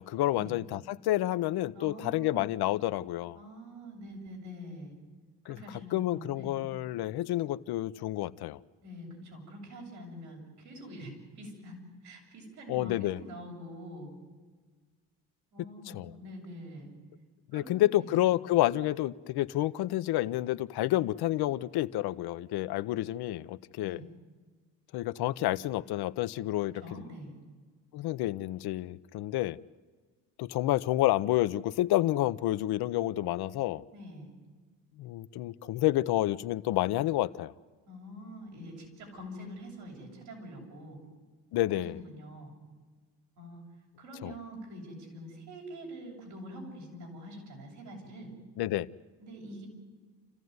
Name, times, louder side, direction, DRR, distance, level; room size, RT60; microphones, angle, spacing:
voice 1, 0.0-3.4 5.5-5.6 5.9-8.6 12.7-13.2 15.9-16.1 17.5-24.0 24.9-26.8 27.9-29.6 30.4-33.8 35.0-37.5 41.5-42.0 44.2-44.3 48.6-48.9, left 15 dB, 70° left, 0.8 m, -29 dB
voice 2, 1.7-2.4 3.4-4.9 5.4-6.6 8.8-14.1 15.5-16.9 17.5-18.1 23.8-24.0 26.7-27.3 33.9-34.3 37.9-41.0 41.8-42.5 43.4-43.6 44.0-48.3 49.2-49.7, equal, 85° right, 7.7 m, -45 dB
29.0 x 15.0 x 9.5 m
supercardioid pair, 80°, 39 cm